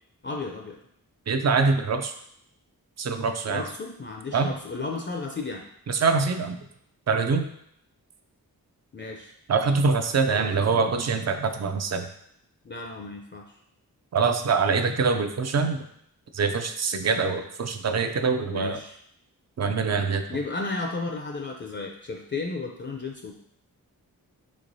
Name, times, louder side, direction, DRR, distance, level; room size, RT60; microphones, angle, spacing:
voice 1, 0.2-0.8 3.5-5.6 8.9-9.3 10.3-10.5 12.6-13.6 18.5-19.0 20.3-23.4, left 3 dB, 30° left, 1 dB, 0.4 m, -33 dB
voice 2, 1.3-2.1 3.0-3.6 4.3-4.5 5.9-6.6 7.1-7.5 9.5-12.0 14.1-15.8 16.3-18.8 19.6-20.2, right 4 dB, 45° right, 7 dB, 0.4 m, -24 dB
3.6 x 3.1 x 2.6 m, 0.72 s
cardioid pair, 55°, 37 cm